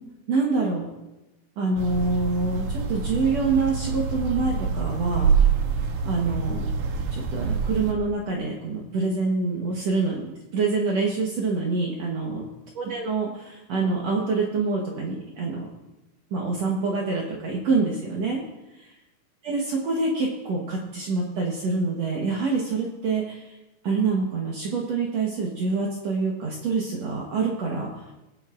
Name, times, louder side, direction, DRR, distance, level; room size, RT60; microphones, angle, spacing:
voice 1, 0.3-0.9 1.6-5.3 6.0-6.7 7.1-10.3 10.5-12.4 12.8-15.7 16.3-18.4 19.4-23.6 23.8-28.1, right 4 dB, 60° right, -2 dB, 2.3 m, -26 dB
sound 1, 1.8-7.9, right 5 dB, 80° right, 2.4 m, -26 dB
20.0 x 10.0 x 2.5 m, 1.0 s
omnidirectional pair, 3.5 m